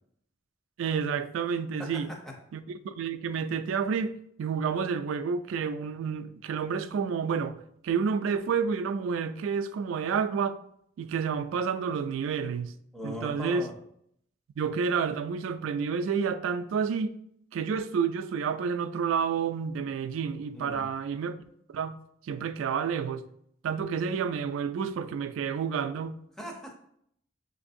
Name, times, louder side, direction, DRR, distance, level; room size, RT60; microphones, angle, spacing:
voice 1, 0.8-2.1 2.5-10.6 11.0-12.7 13.0-13.6 14.6-17.2 17.5-21.4 21.7-23.3 23.6-26.2, right 6 dB, 80° right, 0.3 m, -30 dB
voice 2, 1.8-2.3 12.9-13.7 20.5-20.9 26.4-26.7, equal, ahead, 0.7 m, -39 dB
6.8 x 2.6 x 2.5 m
head